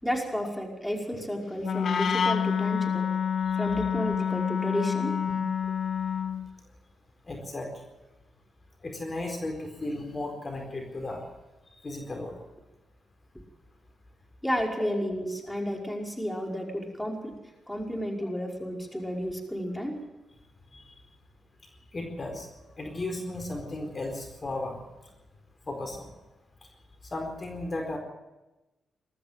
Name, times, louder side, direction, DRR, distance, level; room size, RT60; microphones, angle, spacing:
voice 1, 0.0-3.1 3.6-5.2 14.4-17.4 17.7-20.0, equal, 5° left, 0 dB, 5.4 m, -32 dB
Wind instrument woodwind instrument, 1.6-6.5, left 7 dB, 65° left, 1.1 m, -28 dB
voice 2, 7.3-7.7 8.8-11.3 11.8-12.4 20.7-20.8 21.9-22.5 22.8-24.8 25.7-26.1 27.1-28.0, left 2 dB, 40° left, 3 dB, 4.4 m, -35 dB
21.0 x 13.5 x 9.2 m, 1.1 s
hypercardioid pair, 45°, 0 cm